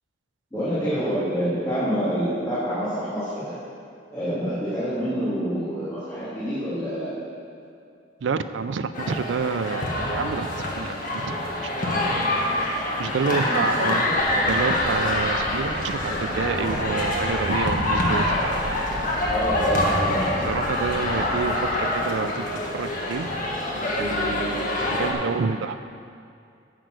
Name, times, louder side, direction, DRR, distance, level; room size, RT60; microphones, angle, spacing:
voice 1, 0.5-3.5 4.1-7.1 13.3-13.8 19.3-20.5, equal, 15° left, -13 dB, 2.6 m, -27 dB
voice 2, 8.2-10.5 10.8-11.0 11.8-11.9 13.0-14.1 14.5-18.5 20.4-23.3 24.0-24.7 25.0-25.8, right 5 dB, 90° right, 11 dB, 0.4 m, -28 dB
sound 1, 8.9-25.1, left 1 dB, 45° left, 1.5 m, -25 dB
sound 2, 14.1-21.7, equal, 60° right, 2.7 m, -36 dB
9.2 x 7.7 x 6.2 m, 2.4 s
head